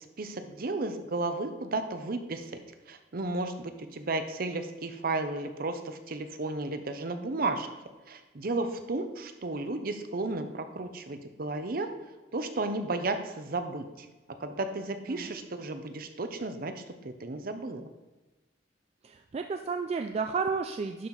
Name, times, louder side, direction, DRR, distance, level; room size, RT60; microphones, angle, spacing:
voice 1, 0.2-2.6 2.9-7.7 8.1-11.9 12.3-14.1 14.4-17.9, right 2 dB, 55° right, 8 dB, 0.7 m, -33 dB
voice 2, 19.0-21.1, right 5 dB, 35° right, 6 dB, 0.3 m, -32 dB
11.0 x 4.4 x 3.9 m, 1.1 s
head